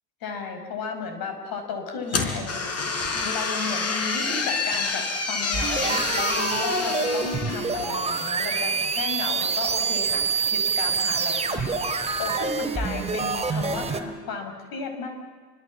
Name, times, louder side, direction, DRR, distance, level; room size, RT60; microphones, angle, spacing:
voice 1, 0.2-2.7 3.1-15.2, left 4 dB, 50° left, 6 dB, 5.5 m, -34 dB
sound 1, 2.1-8.2, left 4 dB, 30° left, 4.4 m, -28 dB
sound 2, 5.5-14.0, right 5 dB, 15° right, 3.1 m, -26 dB
28.5 x 24.0 x 7.4 m, 1.5 s
figure-of-eight pair, 75°, 47 cm